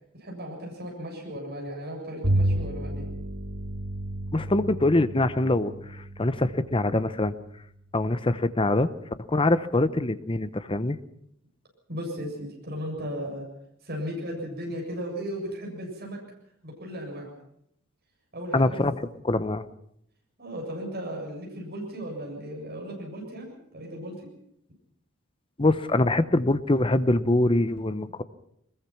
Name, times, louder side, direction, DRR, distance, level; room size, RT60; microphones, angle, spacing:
voice 1, 0.2-3.1 11.9-13.5 13.8-16.2 16.6-17.3 18.3-18.8 20.4-24.3, equal, 45° right, 0 dB, 7.6 m, -36 dB
Bowed string instrument, 2.2-7.9, right 1 dB, 75° right, 2.6 m, -31 dB
voice 2, 4.3-7.3 7.9-8.9 9.3-11.0 18.5-19.0 19.2-19.6 25.6-28.2, left 2 dB, 25° left, 13 dB, 0.8 m, -24 dB
22.0 x 21.0 x 5.9 m, 0.73 s
head